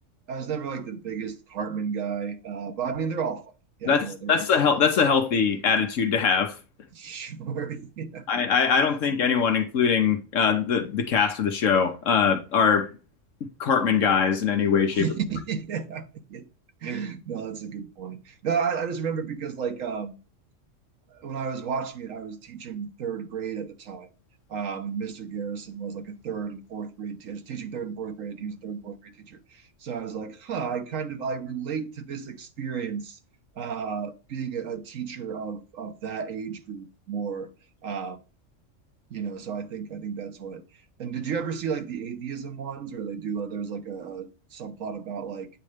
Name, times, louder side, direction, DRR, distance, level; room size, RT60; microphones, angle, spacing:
voice 1, 0.3-3.4 3.8-4.4 6.9-8.3 14.9-16.4 16.8-20.1 21.1-24.1 24.5-33.2 33.6-37.5 37.8-38.2 39.1-40.6 41.0-45.5, right 6 dB, 85° right, 1.4 m, -33 dB
voice 2, 3.8-6.6 8.3-12.9 13.6-15.1, left 6 dB, 75° left, 1.3 m, -22 dB
8.8 x 3.1 x 5.0 m
omnidirectional pair, 1.3 m